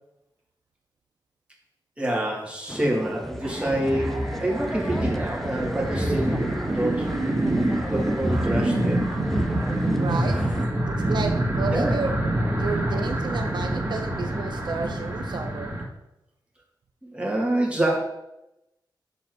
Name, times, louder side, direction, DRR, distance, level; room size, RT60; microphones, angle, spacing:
voice 1, 2.0-7.1 7.9-9.0 10.1-10.6 11.7-12.0 17.0-18.0, right 1 dB, 15° right, -2 dB, 1.7 m, -27 dB
sound 1, 2.7-10.7, equal, 5° left, 0.4 m, -32 dB
sound 2, 3.4-15.8, right 1 dB, 35° right, 1.8 m, -26 dB
voice 2, 10.0-10.4 10.9-12.1 12.6-15.7, right 4 dB, 70° right, 5 dB, 0.6 m, -31 dB
6.7 x 3.2 x 6.0 m, 0.90 s
wide cardioid pair, 90°, 8 cm